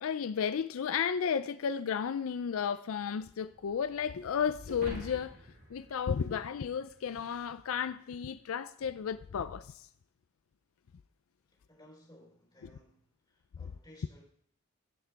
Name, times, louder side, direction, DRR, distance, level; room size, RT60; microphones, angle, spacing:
voice 1, 0.0-5.4 5.7-9.9, left 7 dB, 80° left, 0.4 m, -33 dB
sound 1, 3.1-8.3, equal, 65° right, 4.6 m, -65 dB
sound 2, 4.7-7.2, left 1 dB, 45° right, 3.5 m, -47 dB
voice 2, 11.5-14.2, left 1 dB, 20° left, 3.7 m, -59 dB
17.0 x 5.9 x 3.4 m
head